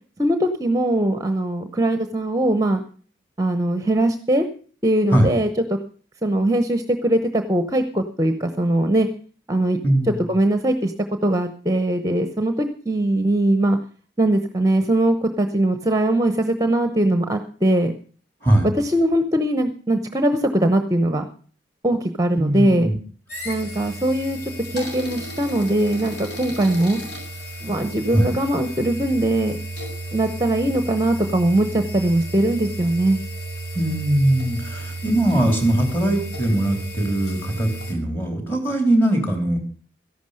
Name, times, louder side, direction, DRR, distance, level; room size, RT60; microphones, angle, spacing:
voice 1, 0.2-2.8 3.4-4.5 4.8-5.5 6.2-9.1 9.5-9.8 10.3-10.9 11.2-13.8 14.2-17.9 18.8-21.3 21.8-22.9 23.4-27.0 27.6-29.6 30.1-33.2, right 1 dB, 15° right, 8 dB, 0.8 m, -21 dB
voice 2, 9.8-10.2 18.4-18.7 22.4-22.9 28.1-28.3 33.7-39.6, right 1 dB, 10° left, 4 dB, 3.3 m, -20 dB
sound 1, 23.3-37.9, right 2 dB, 55° left, 6.3 m, -33 dB
13.5 x 11.5 x 6.4 m, 0.42 s
head